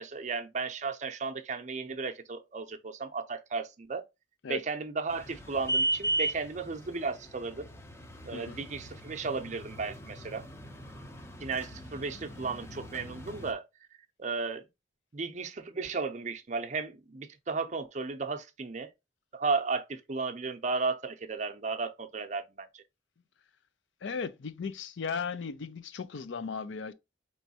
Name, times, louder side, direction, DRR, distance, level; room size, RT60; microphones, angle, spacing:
voice 1, 0.0-4.0 4.5-7.7 8.3-10.4 11.4-13.6 14.2-14.7 15.1-18.9 19.3-22.8, right 4 dB, 40° right, 0.5 m, -34 dB
sound 1, 5.1-13.5, right 1 dB, 15° left, 0.5 m, -37 dB
voice 2, 8.3-8.7 24.0-26.9, left 5 dB, 90° left, 0.5 m, -36 dB
4.5 x 3.1 x 2.7 m
head